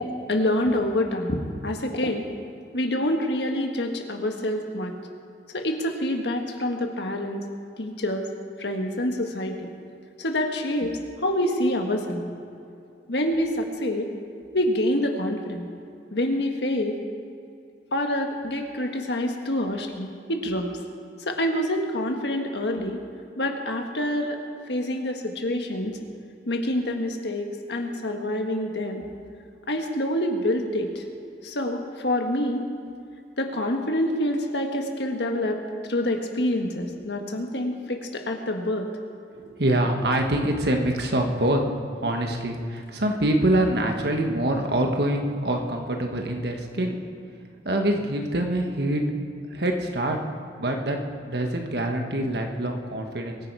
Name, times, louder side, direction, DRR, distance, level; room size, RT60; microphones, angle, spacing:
voice 1, 0.0-2.3 2.7-4.9 5.5-7.4 7.8-8.3 8.6-9.7 10.2-12.3 13.1-14.1 14.5-15.7 16.1-17.0 17.9-20.7 21.2-23.0 23.4-24.4 24.7-26.0 26.4-29.1 29.7-31.0 31.4-32.7 33.4-35.6 35.9-38.9, left 1 dB, 70° left, 3 dB, 1.7 m, -26 dB
voice 2, 39.3-41.6 41.9-47.0 47.6-49.1 49.5-50.2 50.6-53.4, right 1 dB, 65° right, 3 dB, 1.6 m, -25 dB
22.5 x 9.9 x 4.8 m, 2.5 s
head